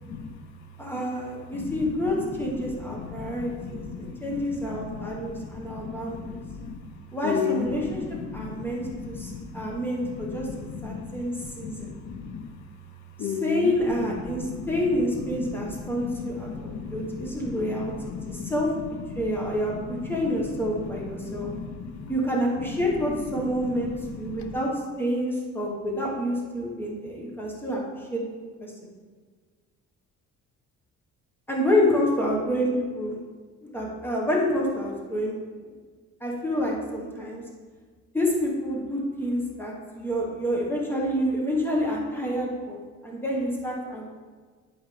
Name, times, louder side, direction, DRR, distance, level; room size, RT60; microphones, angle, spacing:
voice 1, 0.8-6.3 7.1-8.0 8.3-10.5 10.8-11.9 13.2-18.7 19.2-19.8 20.1-21.5 22.1-24.7 25.0-27.8 28.1-28.2 28.6-28.9 31.5-33.2 33.6-35.3 36.2-37.4 38.1-44.1, equal, 5° left, -3 dB, 1.3 m, -28 dB
voice 2, 2.7-4.4 4.7-6.8 7.2-8.6 8.8-9.7 10.0-12.4 13.2-13.8 14.2-14.8 15.2-18.5 19.1-19.2 19.7-20.3 20.6-22.1 23.4-23.7 24.0-24.5, left 6 dB, 70° left, 6 dB, 0.8 m, -35 dB
10.5 x 4.5 x 3.3 m, 1.5 s
cardioid pair, 145°, 30 cm